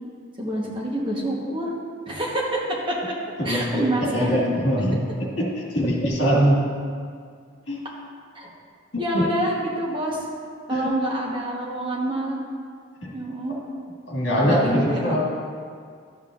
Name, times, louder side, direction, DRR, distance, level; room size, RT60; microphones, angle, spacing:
voice 1, 0.4-1.8 2.1-2.9 3.4-4.4 8.3-8.5 9.0-10.2 10.7-12.4 13.1-13.6 14.4-15.0, right 1 dB, 25° right, -4 dB, 1.1 m, -27 dB
voice 2, 3.4-5.0 5.4-5.5 5.7-6.6 7.7-7.8 9.1-9.3 10.7-10.9 14.1-15.2, equal, 60° left, -4 dB, 2.0 m, -22 dB
12.5 x 7.3 x 2.5 m, 2.1 s
head